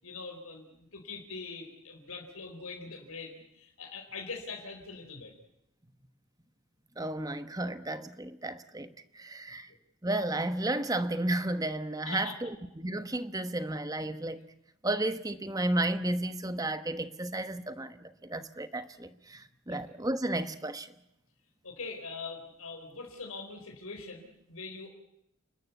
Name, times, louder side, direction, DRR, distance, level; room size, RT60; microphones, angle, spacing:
voice 1, 0.0-5.3 12.0-12.3 19.7-19.8 21.6-24.9, left 4 dB, 75° left, 4.5 m, -43 dB
voice 2, 7.0-8.9 9.1-9.7 10.0-14.5 14.8-20.9, right 1 dB, 15° right, 1.1 m, -33 dB
30.0 x 13.5 x 9.6 m
head